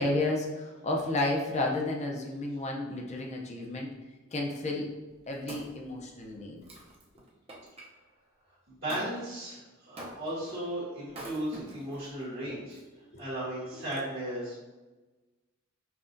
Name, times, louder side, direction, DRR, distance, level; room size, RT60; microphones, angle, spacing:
voice 1, 0.0-3.9 4.3-4.9 5.3-6.6 12.5-12.6, left 2 dB, 35° left, 0 dB, 0.6 m, -31 dB
Wood, 4.9-7.9 8.9-9.1 10.0-10.5 11.1-12.1 12.7-12.8, right 1 dB, 30° right, 0.7 m, -46 dB
voice 2, 8.7-12.8 13.2-14.6, right 1 dB, 55° right, -11 dB, 1.4 m, -36 dB
5.7 x 2.4 x 2.6 m, 1.2 s
head